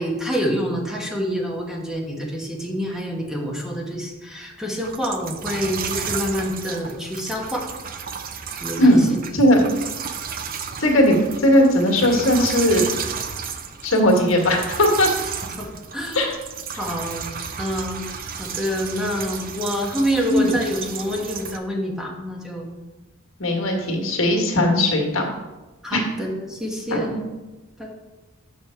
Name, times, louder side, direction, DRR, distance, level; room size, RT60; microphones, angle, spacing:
voice 1, 0.0-7.7 8.6-9.3 9.6-9.7 15.6-16.3 16.8-17.3 17.6-18.1 18.4-22.7 25.8-27.2 27.8-27.9, equal, 5° right, -1 dB, 1.2 m, -27 dB
sound 1, 4.8-21.6, right 6 dB, 45° right, 0.5 m, -33 dB
voice 2, 10.8-12.9 13.8-15.1 16.1-16.3 20.3-20.5 23.4-25.3 25.9-26.0 26.9-27.1, left 1 dB, 75° left, 1 dB, 1.6 m, -18 dB
6.9 x 5.5 x 4.4 m, 1.1 s
head